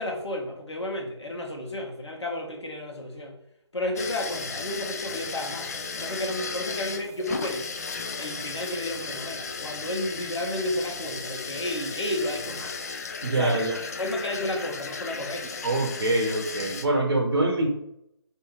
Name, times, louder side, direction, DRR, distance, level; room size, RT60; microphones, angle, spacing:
voice 1, 0.0-3.4 3.7-5.7 6.0-7.7 8.2-12.8 13.3-15.6, left 1 dB, 75° left, 0 dB, 1.4 m, -32 dB
sound 1, 4.0-16.9, left 4 dB, 35° left, 0.4 m, -35 dB
voice 2, 13.2-13.8 15.6-17.7, right 2 dB, 55° right, 0 dB, 0.8 m, -24 dB
3.5 x 2.7 x 4.6 m, 0.78 s
figure-of-eight pair, 150°, 15 cm